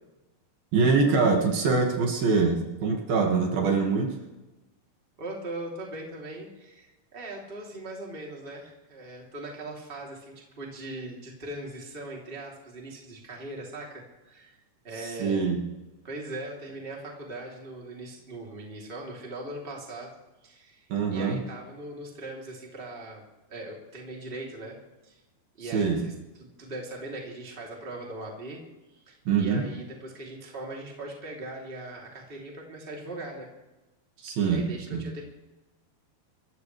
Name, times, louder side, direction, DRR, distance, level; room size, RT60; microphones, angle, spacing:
voice 1, 0.7-4.2 15.0-15.6 20.9-21.4 25.7-26.0 29.3-29.7 34.2-34.6 34.9-35.1, right 4 dB, 65° right, 1 dB, 3.5 m, -24 dB
voice 2, 5.2-15.4 16.0-20.1 20.4-23.2 23.5-24.8 25.0-25.2 25.6-26.1 26.4-28.6 28.9-33.5 34.4-35.2, right 2 dB, 15° right, -2 dB, 2.6 m, -40 dB
27.0 x 14.5 x 3.3 m, 1.1 s
omnidirectional pair, 4.6 m